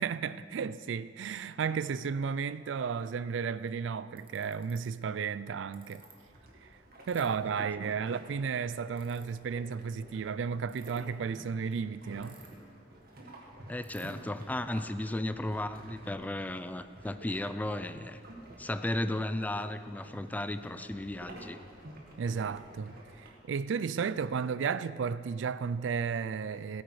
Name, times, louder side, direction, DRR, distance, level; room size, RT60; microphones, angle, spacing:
voice 1, 0.0-6.0 6.6-6.7 7.1-12.4 22.2-26.8, right 6 dB, 75° right, 0.4 m, -33 dB
Ratchet pawl, 4.2-4.8 5.7-6.1 7.1-7.3 8.9-9.2 10.6-11.0 12.2-12.7 13.0-13.1 13.3-13.4 13.8-14.1, right 7 dB, 30° right, 1.4 m, -56 dB
sound 1, 6.0-23.3, right 1 dB, 55° right, 1.8 m, -51 dB
voice 2, 13.7-18.2 18.6-21.6, left 1 dB, 10° left, 0.3 m, -35 dB
16.5 x 9.0 x 4.8 m
head